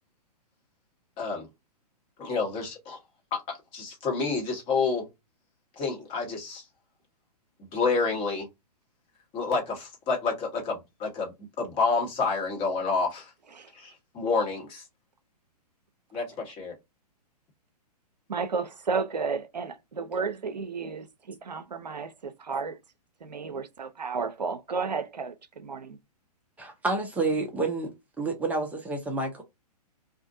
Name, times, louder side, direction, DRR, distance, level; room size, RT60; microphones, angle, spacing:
voice 1, 1.2-1.5 2.2-3.0 3.5-5.1 5.8-6.6 7.7-8.5 9.3-13.3 13.7-14.8 16.1-16.7, left 4 dB, 25° left, 1.2 m, -29 dB
voice 2, 18.3-22.8 23.2-26.0, right 5 dB, 85° right, 0.5 m, -32 dB
voice 3, 26.6-27.9 28.2-29.4, right 3 dB, 5° right, 0.6 m, -29 dB
2.5 x 2.4 x 2.5 m
figure-of-eight pair, 115°, 21 cm